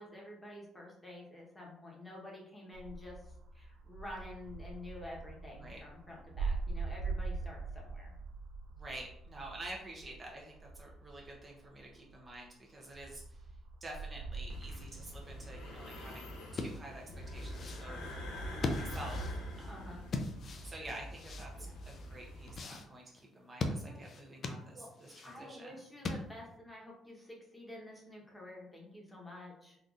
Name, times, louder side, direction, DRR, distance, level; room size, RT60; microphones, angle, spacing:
voice 1, 0.0-8.1 19.7-20.0 21.6-21.8 23.8-24.0 24.7-24.9 25.2-29.8, left 1 dB, 15° left, -2 dB, 1.0 m, -49 dB
sound 1, 2.7-12.4 12.9-15.7, right 4 dB, 70° right, 0.4 m, -43 dB
voice 2, 8.7-13.5 13.8-16.3 16.5-18.2 18.8-20.1 20.6-25.7, right 1 dB, 25° right, -2 dB, 0.6 m, -49 dB
sound 2, 14.5-22.6, equal, 90° left, 0.6 m, -44 dB
sound 3, 16.5-26.6, left 3 dB, 45° left, 0.4 m, -41 dB
3.8 x 2.6 x 2.4 m, 0.77 s
cardioid pair, 115°, 0 cm